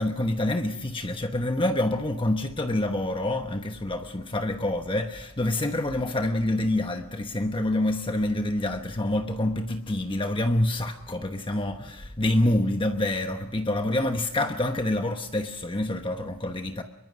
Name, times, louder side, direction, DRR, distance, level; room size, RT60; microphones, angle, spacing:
voice 1, 0.0-16.8, left 1 dB, 25° left, 1.1 m, -27 dB
25.0 x 22.5 x 6.2 m
head